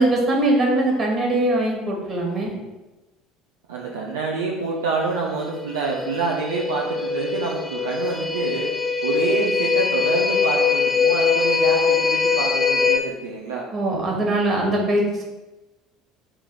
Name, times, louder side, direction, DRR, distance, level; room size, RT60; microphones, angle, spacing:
voice 1, 0.0-2.6 13.7-15.3, right 1 dB, 40° right, -1 dB, 2.4 m, -21 dB
voice 2, 3.7-13.7, right 4 dB, 75° right, -2 dB, 0.8 m, -27 dB
sound 1, 5.5-13.0, left 5 dB, 30° left, 0.9 m, -22 dB
7.4 x 3.4 x 5.0 m, 1.1 s
figure-of-eight pair, 65°, 0 cm